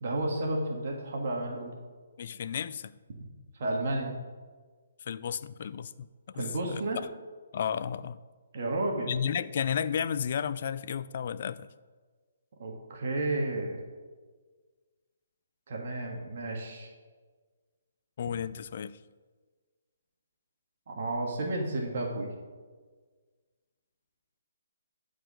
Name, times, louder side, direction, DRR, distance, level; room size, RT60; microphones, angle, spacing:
voice 1, 0.0-1.7 3.6-4.1 6.4-7.0 8.5-9.1 12.6-13.8 15.7-16.9 20.9-22.3, right 2 dB, 55° right, 0 dB, 1.9 m, -32 dB
voice 2, 2.2-2.9 5.1-6.1 6.3-6.8 7.5-8.2 9.1-11.7 18.2-19.0, left 8 dB, 55° left, 15 dB, 0.4 m, -33 dB
11.0 x 4.9 x 5.1 m, 1.5 s
hypercardioid pair, 145°, 0 cm